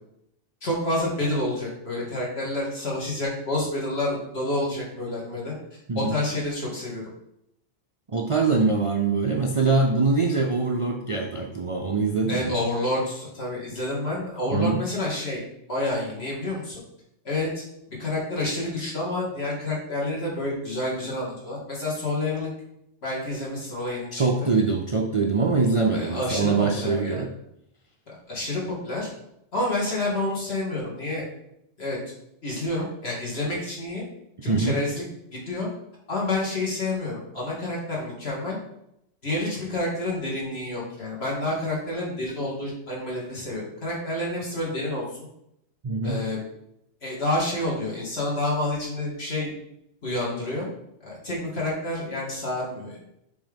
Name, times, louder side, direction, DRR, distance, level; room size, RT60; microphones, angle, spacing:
voice 1, 0.6-5.5 5.9-7.0 12.3-15.4 15.7-16.8 17.2-17.6 18.0-22.5 23.0-24.5 25.9-27.2 28.1-29.1 29.5-31.3 31.8-32.0 32.4-34.0 34.4-35.0 35.3-35.7 36.1-38.6 39.2-45.2 46.0-46.4 47.0-49.5 50.0-50.7 51.0-53.0, left 1 dB, 55° left, -4 dB, 2.3 m, -29 dB
voice 2, 8.1-12.6 14.5-14.8 24.1-27.3 34.5-34.8 45.8-46.2, right 4 dB, 40° right, 0 dB, 0.5 m, -23 dB
5.9 x 3.5 x 5.2 m, 0.79 s
omnidirectional pair, 1.3 m